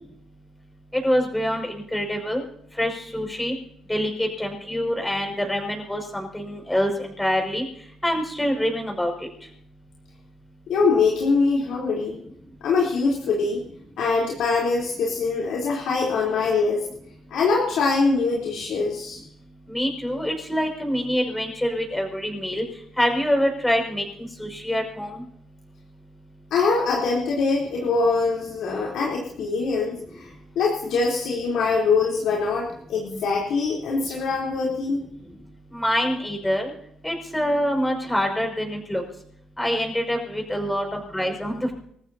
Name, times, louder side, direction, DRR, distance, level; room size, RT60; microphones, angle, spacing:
voice 1, 0.9-2.4 2.8-3.5 3.9-7.7 8.0-9.1 19.7-22.6 23.0-25.2 35.7-36.7 37.0-39.0 39.6-41.7, equal, 10° left, 3 dB, 6.0 m, -25 dB
voice 2, 10.7-12.2 12.6-13.6 14.0-16.8 17.3-19.2 26.5-30.3 30.6-35.0, left 4 dB, 80° left, -4 dB, 3.7 m, -23 dB
26.5 x 14.5 x 2.8 m, 0.69 s
cardioid pair, 90°, 0 cm